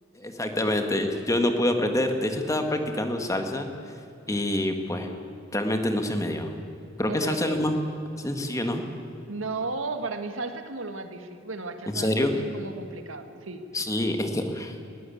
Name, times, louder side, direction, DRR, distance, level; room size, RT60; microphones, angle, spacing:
voice 1, 0.2-3.7 4.3-5.1 5.5-6.5 7.0-7.8 8.2-8.8 11.9-12.4 13.7-14.8, left 1 dB, 15° left, 5 dB, 1.7 m, -26 dB
voice 2, 7.1-7.6 9.3-13.6, right 3 dB, 85° right, 7 dB, 1.8 m, -34 dB
21.5 x 16.0 x 8.5 m, 2.8 s
head